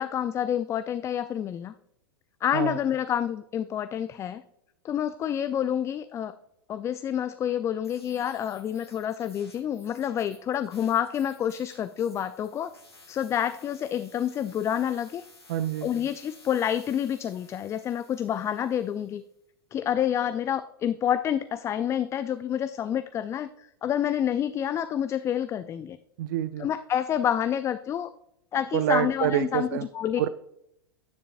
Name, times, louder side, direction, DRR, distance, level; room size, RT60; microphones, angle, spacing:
voice 1, 0.0-1.7 2.4-4.4 4.8-6.3 6.7-12.7 13.1-15.2 15.8-19.2 19.7-26.0 26.6-28.1 28.5-29.7 29.9-30.2, left 9 dB, 20° left, 13 dB, 0.4 m, -28 dB
sound 1, 7.8-19.2, left 2 dB, 90° left, 1.5 m, -55 dB
voice 2, 15.5-15.9 26.2-26.7 28.7-29.9 30.2-30.3, right 12 dB, 55° right, 14 dB, 0.4 m, -27 dB
10.0 x 9.4 x 2.5 m, 0.78 s
figure-of-eight pair, 95°, 13 cm